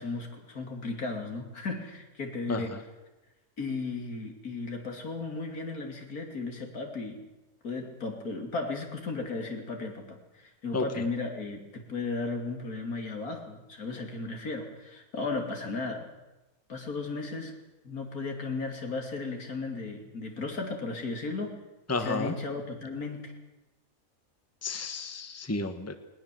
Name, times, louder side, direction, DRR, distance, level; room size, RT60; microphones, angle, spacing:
voice 1, 0.0-2.7 3.6-7.2 7.6-16.1 16.7-17.6 17.8-21.6 22.0-23.4, left 3 dB, 85° left, 3 dB, 3.4 m, -35 dB
voice 2, 21.9-22.3 24.6-26.0, left 3 dB, 10° left, 8 dB, 1.3 m, -31 dB
20.0 x 19.5 x 7.7 m, 1.0 s
omnidirectional pair, 1.5 m